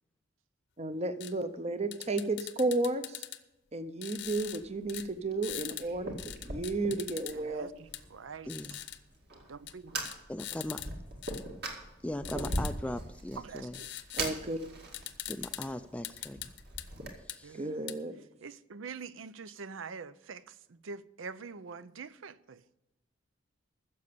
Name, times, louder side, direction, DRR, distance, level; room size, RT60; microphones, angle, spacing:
voice 1, 0.8-3.2 3.7-7.7 14.1-14.6 17.5-18.2, right 2 dB, 35° right, 0.7 m, -33 dB
sound 1, 1.2-1.3 1.9-3.4 4.0-4.6 4.9-5.1 5.4-5.9 6.2-7.4 7.9-8.0 8.5-9.0 9.7-9.8 10.1-10.9 11.2-11.4 12.2-12.7 13.7-14.3 14.6-14.7 14.9-15.7 16.0-16.9 17.3-17.4 17.9-18.0, left 13 dB, 60° left, 0.8 m, -41 dB
Fire, 4.2-17.1, right 1 dB, 55° right, 2.2 m, -41 dB
voice 2, 7.3-8.8 9.5-10.0 13.4-13.9 17.4-18.0 18.4-22.6, right 5 dB, 90° right, 0.6 m, -45 dB
voice 3, 8.5-8.8 10.3-10.9 12.0-13.7 15.3-16.4 17.2-17.6, left 1 dB, 5° left, 0.3 m, -39 dB
15.0 x 6.8 x 6.8 m
head